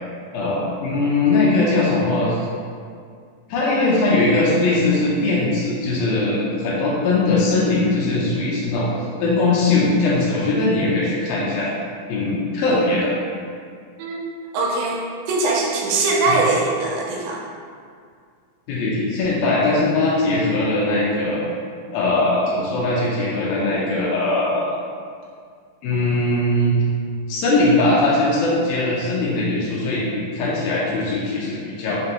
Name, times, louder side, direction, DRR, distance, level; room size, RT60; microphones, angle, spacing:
voice 1, 0.3-2.4 3.5-8.9 9.2-11.7 12.1-13.1 16.3-16.4 18.7-21.4 21.9-24.7 25.8-26.7 27.3-30.1 30.3-32.0, left 2 dB, 80° left, -5 dB, 2.3 m, -20 dB
voice 2, 14.5-17.4, right 3 dB, 80° right, -2 dB, 2.1 m, -21 dB
6.1 x 2.2 x 2.8 m, 2.2 s
omnidirectional pair, 4.1 m